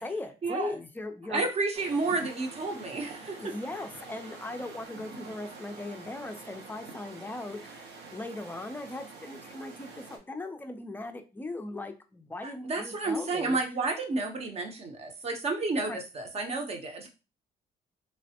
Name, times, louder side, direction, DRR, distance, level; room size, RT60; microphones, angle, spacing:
voice 1, 0.0-1.4 3.4-13.6 15.8-16.0, left 2 dB, 10° left, 6 dB, 0.4 m, -39 dB
voice 2, 1.3-3.5 12.4-17.1, right 3 dB, 40° right, 4 dB, 0.7 m, -31 dB
sound 1, 1.7-10.2, right 4 dB, 80° right, 0.9 m, -47 dB
3.2 x 2.1 x 2.7 m, 0.31 s
cardioid pair, 110°, 17 cm